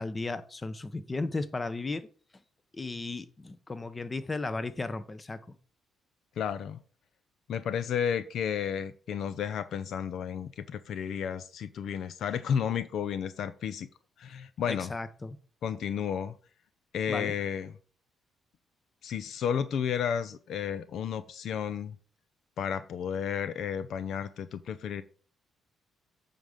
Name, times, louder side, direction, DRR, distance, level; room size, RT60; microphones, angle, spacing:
voice 1, 0.0-2.1 2.7-5.4 14.7-15.4 17.1-17.3, left 3 dB, 25° left, 0.9 m, -35 dB
voice 2, 6.4-6.8 7.5-13.9 14.2-14.9 15.6-16.3 16.9-17.7 19.0-22.0 22.6-25.0, left 8 dB, 70° left, 0.5 m, -32 dB
9.0 x 3.7 x 6.6 m
cardioid pair, 90°, 0 cm